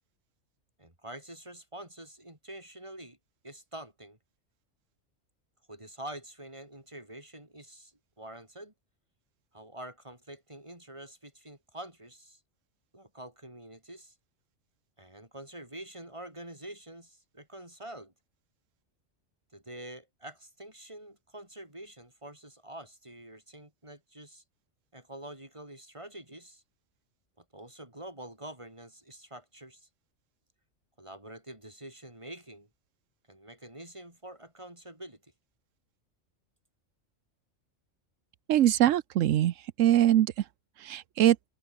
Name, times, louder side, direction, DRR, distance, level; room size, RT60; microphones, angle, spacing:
voice 1, 0.8-3.2 3.4-4.2 5.7-8.7 9.5-12.4 12.9-14.1 15.0-18.1 19.5-24.4 24.9-26.6 27.4-29.9 31.0-32.7 33.3-35.2, right 1 dB, 25° right, 5.2 m, -46 dB
voice 2, 38.5-40.3 40.8-41.4, right 12 dB, 85° right, 1.1 m, -23 dB
omnidirectional pair, 1.3 m